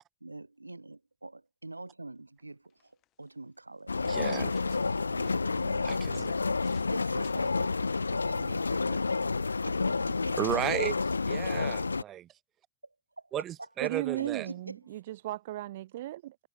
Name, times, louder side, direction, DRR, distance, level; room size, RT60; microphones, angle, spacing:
voice 1, 0.2-2.9 3.2-4.0 5.0-6.1 6.7-9.1 9.6-10.4 10.7-10.8 13.8-13.9 14.2-14.8, right 2 dB, 85° right, 3.8 m, -44 dB
sound 1, 2.4-2.5 2.7-3.3 3.9-4.0 4.3-6.9 7.2-7.6 8.4-8.7, left 16 dB, 35° left, 7.9 m, -60 dB
sound 2, 3.9-12.0, left 4 dB, 80° left, 0.7 m, -30 dB
voice 2, 4.1-4.8 5.8-6.3 8.9-9.0 10.4-10.9 11.3-12.3 13.3-14.5, right 12 dB, 30° right, 2.0 m, -34 dB
voice 3, 13.8-16.4, right 15 dB, 55° right, 1.7 m, -36 dB
figure-of-eight pair, 90°, 0 cm